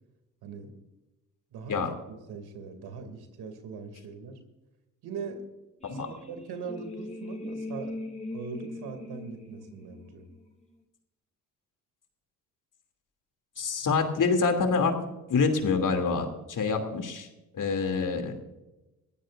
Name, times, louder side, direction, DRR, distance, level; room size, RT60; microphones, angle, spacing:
voice 1, 0.4-0.7 1.5-4.4 5.0-5.5 5.9-8.0 8.3-10.3, right 5 dB, 80° right, 7 dB, 2.7 m, -41 dB
sound 1, 5.8-10.6, left 2 dB, 20° left, 2.8 m, -40 dB
voice 2, 13.6-14.9 15.3-17.3 17.5-18.3, left 4 dB, 55° left, 5 dB, 2.9 m, -26 dB
21.0 x 15.5 x 2.6 m, 1.0 s
supercardioid pair, 55°, 38 cm